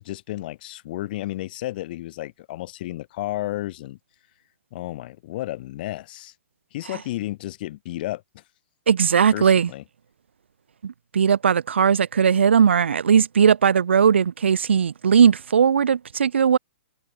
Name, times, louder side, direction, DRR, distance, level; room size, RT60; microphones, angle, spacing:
voice 1, 0.0-4.0 4.7-6.3 6.7-8.4 9.3-9.8, left 16 dB, 50° left, 2.4 m, -32 dB
voice 2, 8.9-9.7 10.8-16.6, right 7 dB, 70° right, 0.7 m, -18 dB
figure-of-eight pair, 120°, 6 cm